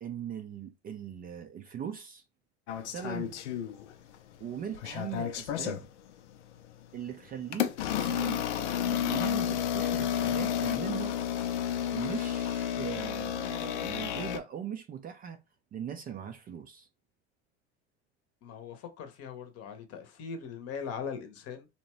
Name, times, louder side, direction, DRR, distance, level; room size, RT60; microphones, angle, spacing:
voice 1, 0.0-2.2 2.9-3.4 4.4-5.9 6.9-7.7 8.0-8.5 8.9-11.2 11.9-15.4 15.7-16.9, right 8 dB, 25° right, 0.4 m, -40 dB
sound 1, 2.7-4.2 4.5-5.9 6.5-6.7 7.5-14.4, left 9 dB, 85° left, 0.5 m, -31 dB
voice 2, 18.4-21.7, left 6 dB, 45° left, 0.8 m, -40 dB
2.7 x 2.1 x 3.0 m
hypercardioid pair, 80°, 34 cm